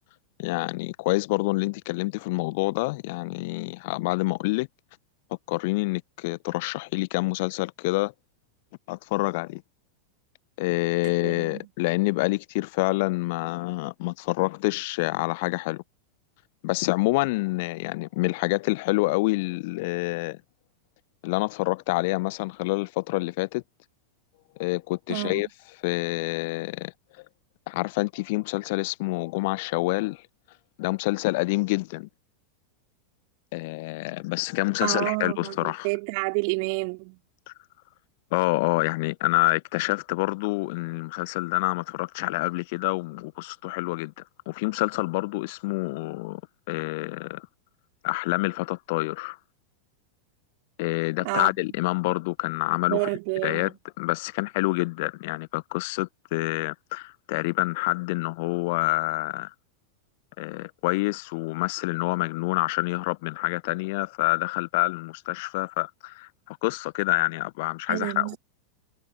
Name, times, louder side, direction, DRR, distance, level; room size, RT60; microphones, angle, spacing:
voice 1, 0.4-4.7 5.5-8.1 8.9-9.6 10.6-15.8 16.6-20.4 21.2-23.6 24.6-25.5 25.8-26.9 27.7-30.2 30.8-32.1 33.5-35.9 37.5-37.6 38.3-46.4 46.7-47.5 48.0-49.4 50.8-53.0 53.4-59.5 60.4-68.4, left 23 dB, 50° left, 0.9 m, -27 dB
voice 2, 11.0-11.7 25.1-25.5 34.8-37.2 51.2-51.5 52.9-53.7 67.9-68.4, right 35 dB, 45° right, 3.1 m, -29 dB
figure-of-eight pair, 90°, 0 cm